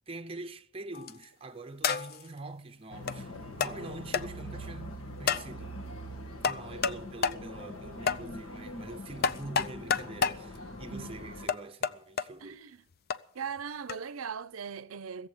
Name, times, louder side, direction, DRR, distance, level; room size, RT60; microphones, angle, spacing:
voice 1, 0.1-5.7 6.4-12.6, right 2 dB, 25° right, 0.6 m, -45 dB
sound 1, 0.9-1.2 1.8-2.3 3.1-3.2 3.6-3.7 4.1-4.2 5.3-5.5 6.4-7.0 7.2-7.4 8.1-8.2 9.2-10.4 11.5-12.3 13.1-13.2 13.9-14.0, left 6 dB, 50° left, 0.5 m, -29 dB
sound 2, 2.9-11.5, equal, 80° left, 1.8 m, -43 dB
voice 2, 12.4-12.8 13.3-15.3, right 6 dB, 90° right, 0.6 m, -39 dB
15.5 x 7.6 x 9.2 m
head